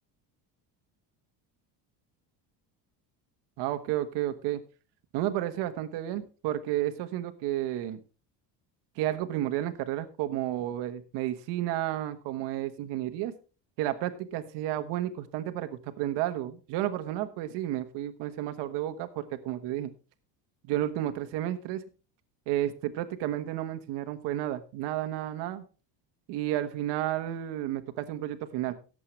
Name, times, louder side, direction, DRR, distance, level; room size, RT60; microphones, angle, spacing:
voice 1, 3.6-4.6 5.1-8.0 9.0-13.3 13.8-19.9 20.6-21.8 22.5-25.6 26.3-28.7, right 13 dB, 65° right, 8 dB, 1.3 m, -32 dB
17.5 x 7.8 x 3.2 m, 0.34 s
cardioid pair, 175°, 44 cm